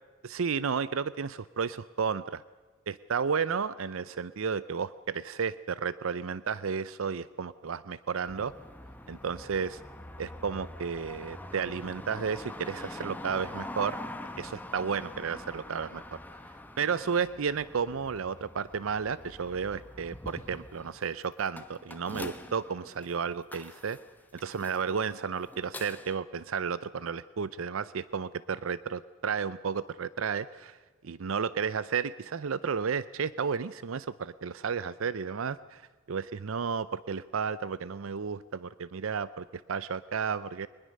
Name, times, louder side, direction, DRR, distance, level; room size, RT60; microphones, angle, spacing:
voice 1, 0.2-2.4 2.9-8.5 9.1-9.8 10.2-14.0 14.4-16.2 16.8-24.0 24.3-30.8 31.0-40.7, right 6 dB, 75° right, 17 dB, 0.5 m, -32 dB
sound 1, 8.3-26.2, left 1 dB, 10° left, 1.1 m, -44 dB
22.5 x 20.5 x 6.6 m, 1.4 s
head